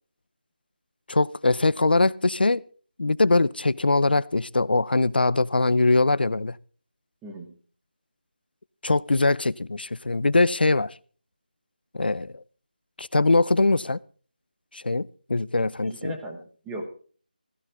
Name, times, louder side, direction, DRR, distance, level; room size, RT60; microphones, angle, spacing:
voice 1, 1.1-2.6 3.0-6.6 8.8-10.9 11.9-12.4 13.0-14.0 14.7-16.1, left 3 dB, 80° left, 0.7 m, -22 dB
voice 2, 15.8-16.9, right 1 dB, 5° right, 1.2 m, -37 dB
16.0 x 15.0 x 3.6 m
figure-of-eight pair, 175°, 5 cm